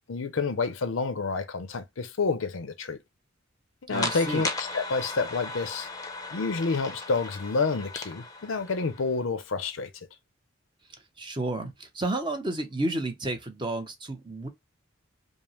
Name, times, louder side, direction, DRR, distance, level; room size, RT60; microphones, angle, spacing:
voice 1, 0.0-3.0 3.9-5.9 6.3-9.9, left 4 dB, 85° left, 0.6 m, -29 dB
sound 1, 3.9-9.2, left 3 dB, 20° left, 0.6 m, -36 dB
voice 2, 3.9-4.4 11.2-14.5, right 2 dB, 25° right, 0.7 m, -31 dB
5.2 x 2.0 x 3.0 m
head